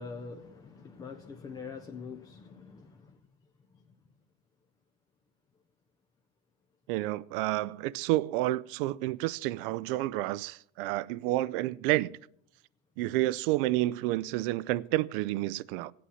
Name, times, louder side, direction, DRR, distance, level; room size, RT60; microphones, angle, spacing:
voice 1, 0.0-3.1, left 5 dB, 15° left, 0.4 m, -44 dB
voice 2, 6.9-12.1 13.0-15.9, right 17 dB, 70° right, 0.5 m, -30 dB
17.0 x 8.5 x 5.7 m
cardioid pair, 170°, 29 cm